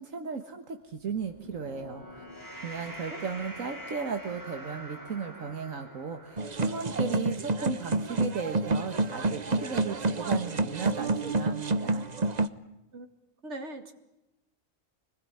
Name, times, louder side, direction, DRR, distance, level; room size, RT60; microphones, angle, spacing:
voice 1, 0.0-2.2 2.6-12.1, right 5 dB, 80° right, 6 dB, 2.0 m, -36 dB
sound 1, 1.1-7.6, equal, 15° right, 3.5 m, -45 dB
sound 2, 6.4-12.5, right 2 dB, 35° right, 1.1 m, -28 dB
voice 2, 13.4-13.9, right 1 dB, 60° right, 7 dB, 2.7 m, -40 dB
25.5 x 20.5 x 9.7 m, 0.92 s
omnidirectional pair, 1.4 m